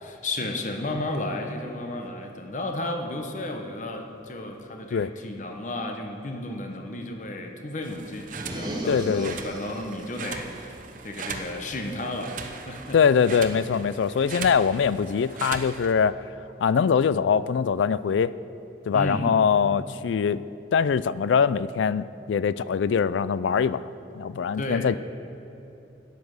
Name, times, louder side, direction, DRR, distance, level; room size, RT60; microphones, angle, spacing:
voice 1, 0.0-10.8 11.0-13.0 18.9-19.3 24.6-24.9, left 2 dB, 40° left, 4 dB, 1.0 m, -33 dB
sound 1, 7.8-15.9, right 4 dB, 45° right, 0.8 m, -39 dB
sound 2, 8.3-9.9, right 1 dB, 20° right, 1.2 m, -34 dB
voice 2, 8.9-9.4 12.9-16.2 16.6-18.3 18.9-20.4 20.7-23.9 24.1-25.0, left 6 dB, 85° left, 17 dB, 0.4 m, -23 dB
13.0 x 9.3 x 6.4 m, 2.9 s
head